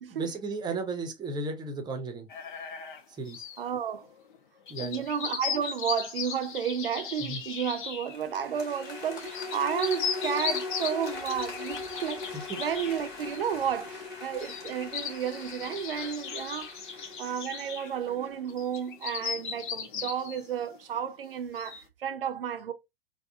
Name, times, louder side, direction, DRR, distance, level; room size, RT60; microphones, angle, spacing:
voice 1, 0.1-2.3 3.2-3.4 4.7-5.0 7.2-7.4 12.3-12.6, right 3 dB, 15° right, 0.7 m, -34 dB
sound 1, 2.3-3.6 4.0-4.4 4.7-8.2 8.7-21.1 21.5-21.8, left 7 dB, 55° left, 0.7 m, -37 dB
voice 2, 3.6-4.1 4.8-16.8 17.2-22.7, right 8 dB, 70° right, 0.6 m, -32 dB
sound 2, 8.1-18.4, left 4 dB, 35° left, 1.4 m, -46 dB
sound 3, 8.4-19.2 19.6-19.7, left 3 dB, 5° left, 0.3 m, -41 dB
3.6 x 2.2 x 3.2 m
figure-of-eight pair, 95°, 29 cm